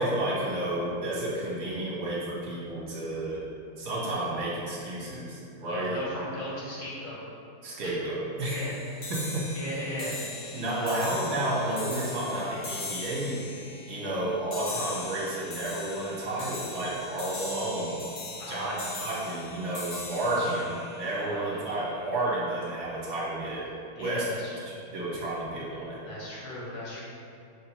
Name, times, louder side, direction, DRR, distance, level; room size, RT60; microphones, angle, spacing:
voice 1, 0.0-3.4 3.8-6.0 7.6-8.8 9.1-9.4 10.5-13.4 13.9-18.0 18.5-20.6 21.0-23.7 24.0-24.3 24.7-26.0, right 1 dB, 70° right, -6 dB, 2.2 m, -31 dB
voice 2, 5.6-7.2 7.8-8.0 8.4-9.1 9.5-10.2 10.6-11.1 18.4-18.9 20.2-20.6 21.2-21.6 23.9-24.6 26.0-27.0, left 1 dB, 75° left, -7 dB, 2.4 m, -37 dB
sound 1, 8.4-21.9, left 3 dB, 50° left, 1.2 m, -40 dB
7.9 x 5.6 x 3.0 m, 2.6 s
omnidirectional pair, 2.2 m